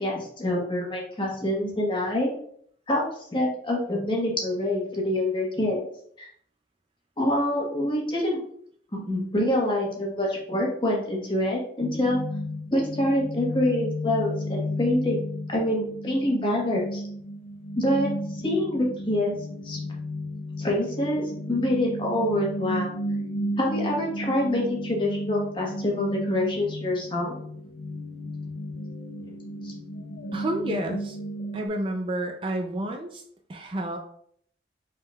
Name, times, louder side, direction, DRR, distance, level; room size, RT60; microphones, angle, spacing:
voice 1, 0.0-2.3 2.9-3.0 3.3-5.8 6.2-6.3 7.2-8.4 8.9-12.2 12.7-15.2 15.5-17.0 17.7-18.1 18.4-19.4 19.6-19.8 20.6-22.9 23.6-27.4 29.6-29.7, left 1 dB, 30° left, -2 dB, 1.2 m, -26 dB
sound 1, 11.8-31.7, equal, 75° left, 0.5 m, -33 dB
voice 2, 30.3-31.2 31.5-33.2 33.5-34.0, right 1 dB, 30° right, 4 dB, 0.4 m, -30 dB
5.3 x 3.7 x 2.3 m, 0.63 s
head